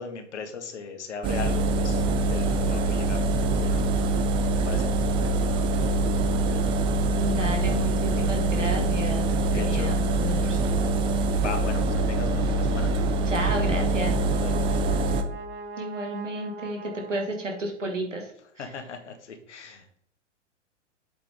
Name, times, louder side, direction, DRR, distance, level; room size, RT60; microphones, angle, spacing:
voice 1, 0.0-2.0 2.3-3.8 4.6-4.9 9.5-9.9 11.4-12.9 14.4-14.5 18.6-19.8, left 5 dB, 65° left, 4 dB, 1.7 m, -37 dB
Engine, 1.2-15.2, right 2 dB, 15° right, 0.4 m, -24 dB
voice 2, 7.2-10.6 13.3-14.2 15.8-18.7, right 1 dB, 85° right, 2 dB, 2.0 m, -32 dB
Brass instrument, 13.6-18.0, right 3 dB, 50° right, 1.4 m, -41 dB
7.7 x 5.8 x 3.6 m, 0.69 s
figure-of-eight pair, 100°, 37 cm